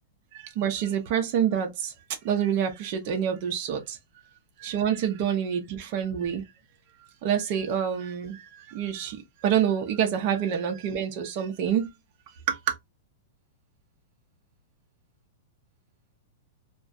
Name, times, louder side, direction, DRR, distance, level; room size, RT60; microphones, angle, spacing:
voice 1, 0.6-1.9 2.2-4.0 4.6-6.4 7.2-11.9 12.3-12.8, right 8 dB, 35° right, 0.5 m, -27 dB
2.3 x 2.2 x 2.5 m
supercardioid pair, 170°, 0 cm